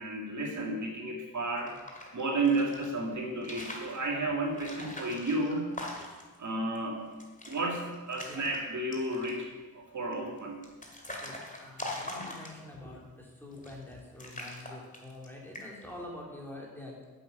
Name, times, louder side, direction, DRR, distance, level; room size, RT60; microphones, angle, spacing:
voice 1, 0.0-1.8 2.1-5.7 6.4-7.1 7.5-9.5 9.7-10.6, right 2 dB, 55° right, 0 dB, 2.2 m, -32 dB
sound 1, 1.5-2.9 3.3-4.0 4.5-6.4 6.8-6.9 7.1-7.6 7.9-8.6 8.9-9.4 10.1-12.8 13.5-13.9 14.2-15.3 15.5-15.9, left 1 dB, 20° left, 2.2 m, -42 dB
voice 2, 11.2-17.1, left 1 dB, 5° left, -2 dB, 2.7 m, -46 dB
11.0 x 8.1 x 8.2 m, 1.3 s
wide cardioid pair, 160°, 35 cm